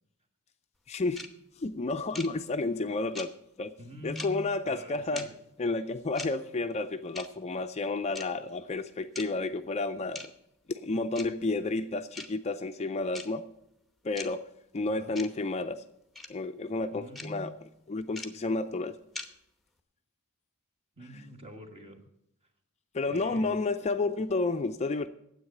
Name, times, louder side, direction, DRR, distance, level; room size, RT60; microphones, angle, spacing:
voice 1, 0.9-1.3 1.6-3.3 3.6-3.7 4.0-5.3 5.6-10.3 10.7-13.4 14.0-14.4 14.7-15.8 16.3-17.5 17.9-19.0 22.9-25.1, left 3 dB, 30° left, 9 dB, 0.4 m, -31 dB
sound 1, 1.2-1.3 2.1-2.3 3.2-3.3 4.2-4.3 5.2-5.3 6.2-6.3 7.2-7.3 8.2-8.3 9.2-9.3 10.2-10.3 11.2-11.3 12.2-12.3 13.1-13.3 14.2-14.3 15.2-15.3 16.2-16.3 17.2-17.3 18.2-18.3 19.2-19.3, left 2 dB, ahead, 0.9 m, -39 dB
voice 2, 3.8-5.3 14.9-15.2 16.9-17.6 21.0-22.0 23.1-23.6, right 1 dB, 25° right, 5 dB, 1.6 m, -45 dB
9.7 x 8.0 x 8.9 m, 0.82 s
head